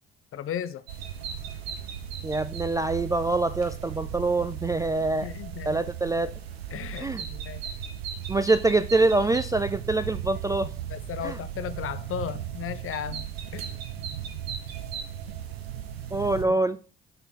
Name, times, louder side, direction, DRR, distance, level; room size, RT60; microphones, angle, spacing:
voice 1, 0.3-0.8 5.2-5.8 6.7-7.6 10.9-13.2 13.5-13.7 16.4-16.5, left 9 dB, 45° left, 0.6 m, -35 dB
sound 1, 0.9-16.4, right 9 dB, 90° right, 0.7 m, -36 dB
voice 2, 2.2-5.3 5.7-6.3 7.0-7.2 8.3-10.7 11.2-11.4 16.1-16.8, right 2 dB, 10° right, 0.3 m, -25 dB
6.6 x 3.9 x 4.5 m
hypercardioid pair, 50°, 30 cm